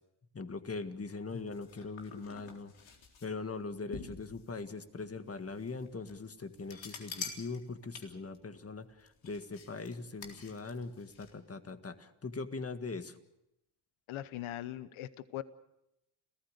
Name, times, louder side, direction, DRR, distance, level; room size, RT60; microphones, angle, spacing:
voice 1, 0.3-2.7 3.2-13.2, left 4 dB, 30° left, 9 dB, 1.8 m, -41 dB
sound 1, 0.7-11.3, left 5 dB, 75° left, 3.9 m, -49 dB
voice 2, 14.1-15.4, left 13 dB, 90° left, 15 dB, 1.0 m, -40 dB
30.0 x 15.0 x 6.7 m, 0.85 s
cardioid pair, 85°, 48 cm